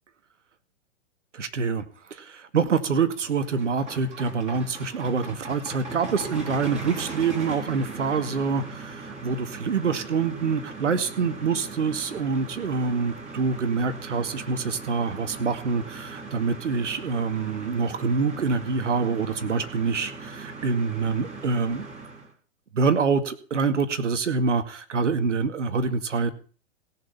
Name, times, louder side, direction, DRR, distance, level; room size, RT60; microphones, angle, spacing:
voice 1, 1.3-21.8 22.7-26.3, right 5 dB, 90° right, 10 dB, 2.1 m, -26 dB
sound 1, 2.9-22.3, right 3 dB, 20° right, 5.6 m, -39 dB
17.0 x 7.9 x 6.9 m, 0.40 s
hypercardioid pair, 125°, 35 cm